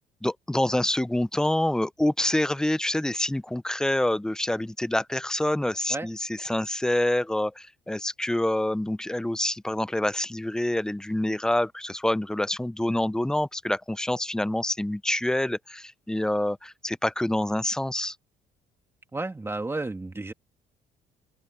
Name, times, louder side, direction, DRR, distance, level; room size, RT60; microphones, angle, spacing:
voice 1, 0.2-18.2, left 1 dB, 5° left, 0.5 m, -27 dB
voice 2, 19.1-20.3, right 2 dB, 15° right, 2.8 m, -32 dB
open air
cardioid pair, 110°, 17 cm